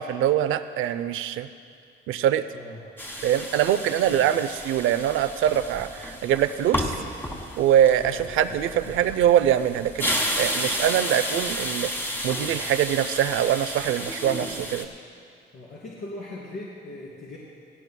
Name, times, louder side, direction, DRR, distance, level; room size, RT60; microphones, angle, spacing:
voice 1, 0.0-1.5 2.1-2.4 3.2-6.9 7.6-10.1 10.4-11.9 12.2-14.9, right 10 dB, 85° right, 12 dB, 0.5 m, -23 dB
sound 1, 3.0-14.8, equal, 10° left, 1.5 m, -32 dB
voice 2, 7.8-8.9 12.2-12.5 15.5-17.4, left 1 dB, 60° left, -7 dB, 2.8 m, -40 dB
17.0 x 16.5 x 2.2 m, 2.2 s
cardioid pair, 90°, 20 cm